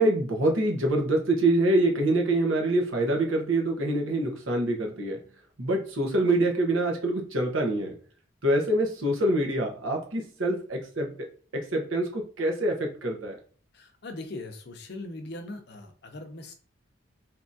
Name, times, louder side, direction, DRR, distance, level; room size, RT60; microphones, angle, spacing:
voice 1, 0.0-5.2 5.6-7.9 8.4-11.3 11.5-13.4, right 1 dB, 80° right, 2 dB, 0.9 m, -25 dB
voice 2, 13.7-16.5, left 2 dB, 55° left, 6 dB, 0.6 m, -40 dB
3.5 x 2.8 x 2.6 m, 0.42 s
head